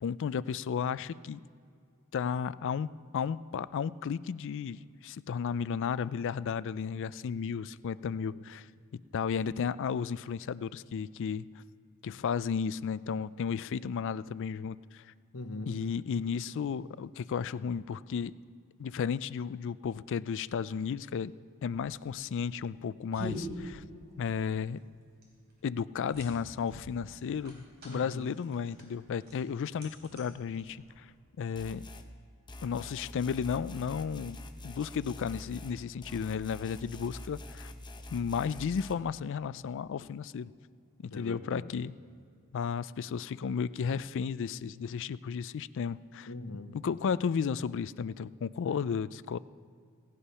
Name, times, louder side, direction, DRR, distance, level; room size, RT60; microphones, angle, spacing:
voice 1, 0.0-1.4 2.1-2.9 3.1-8.7 9.1-11.5 12.0-15.1 15.7-18.3 18.8-21.3 21.6-23.8 24.2-24.8 25.6-31.1 31.4-31.9 32.6-34.4 34.6-37.7 38.1-40.5 41.0-41.9 42.5-46.3 46.7-49.4, left 6 dB, 60° left, 18 dB, 0.3 m, -33 dB
voice 2, 15.3-15.8 27.9-28.3 41.1-41.7 46.3-46.8, left 2 dB, 90° left, 7 dB, 1.0 m, -41 dB
sound 1, 21.6-31.2, right 1 dB, 50° right, 4.1 m, -46 dB
sound 2, 31.6-32.1 32.5-35.8 36.0-38.9, left 1 dB, 20° left, 0.7 m, -46 dB
17.0 x 9.8 x 5.6 m, 2.4 s
head